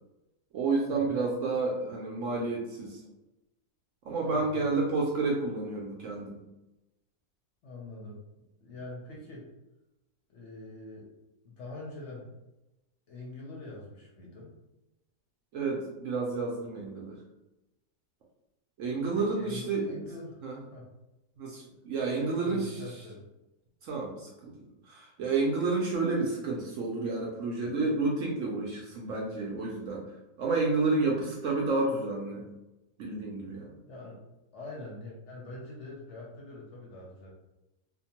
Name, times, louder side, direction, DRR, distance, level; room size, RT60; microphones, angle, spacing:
voice 1, 0.5-3.0 4.0-6.4 15.5-17.2 18.8-19.9 20.4-20.6 21.4-22.7 23.8-24.5 24.8-32.5 33.0-33.8, right 3 dB, 70° right, -2 dB, 0.8 m, -30 dB
voice 2, 4.2-4.8 7.6-8.2 8.6-9.5 10.3-11.1 11.4-12.3 13.1-14.5 19.2-20.4 20.7-20.9 21.8-23.2 33.9-34.2 34.5-37.3, left 2 dB, 60° left, -4 dB, 0.8 m, -44 dB
2.8 x 2.2 x 2.8 m, 0.98 s
omnidirectional pair, 1.6 m